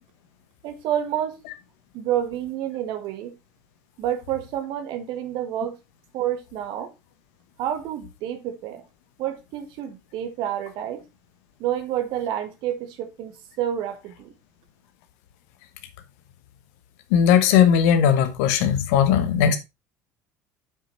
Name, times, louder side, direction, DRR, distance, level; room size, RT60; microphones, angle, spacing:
voice 1, 0.6-1.4 1.9-3.3 4.0-5.7 6.1-6.9 7.6-8.8 9.2-11.0 11.6-14.3, right 11 dB, 60° right, 1.7 m, -29 dB
voice 2, 17.1-19.6, left 8 dB, 65° left, 1.2 m, -18 dB
7.3 x 6.2 x 4.1 m
figure-of-eight pair, 60°, 9 cm